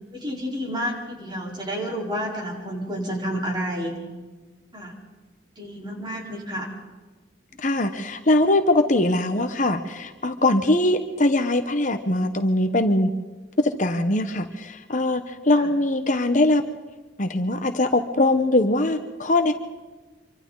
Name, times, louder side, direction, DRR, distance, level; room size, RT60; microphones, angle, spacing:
voice 1, 0.1-3.9 4.7-4.9 5.6-6.7 15.5-15.7, equal, 25° right, -1 dB, 4.5 m, -30 dB
voice 2, 7.6-13.1 13.6-16.6 17.2-19.5, left 1 dB, 45° left, 7 dB, 1.2 m, -21 dB
26.0 x 25.0 x 4.1 m, 1.2 s
head